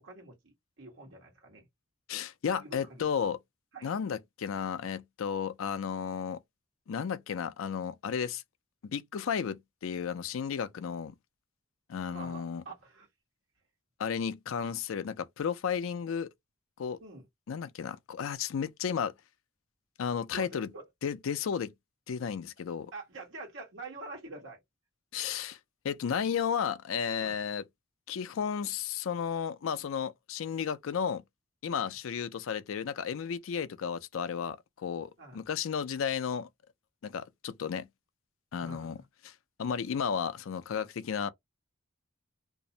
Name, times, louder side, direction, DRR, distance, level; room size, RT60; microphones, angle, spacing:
voice 1, 0.0-1.7 2.5-3.1 3.7-3.9 12.0-13.1 17.0-17.3 20.3-20.8 22.9-24.6 27.2-27.4 31.7-31.9 35.2-35.4 38.6-39.0, right 3 dB, 65° right, 1.2 m, -46 dB
voice 2, 2.1-3.4 3.8-6.4 6.9-8.4 8.8-11.1 11.9-12.6 14.0-16.3 16.8-17.0 17.5-19.1 20.0-20.7 21.0-21.7 22.1-22.9 25.1-25.6 25.8-27.6 28.1-31.2 31.6-36.5 37.0-37.9 38.5-39.3 39.6-41.3, left 7 dB, 80° left, 0.4 m, -33 dB
2.6 x 2.0 x 2.6 m
head